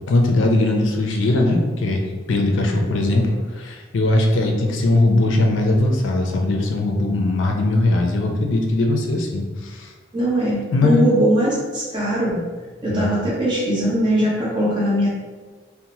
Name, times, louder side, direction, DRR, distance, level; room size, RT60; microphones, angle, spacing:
voice 1, 0.1-9.9 10.7-11.1 12.9-13.1, left 2 dB, 80° left, 2 dB, 0.4 m, -20 dB
voice 2, 10.1-12.5 12.8-15.1, right 1 dB, 25° right, -7 dB, 0.8 m, -20 dB
2.7 x 2.1 x 2.9 m, 1.3 s
head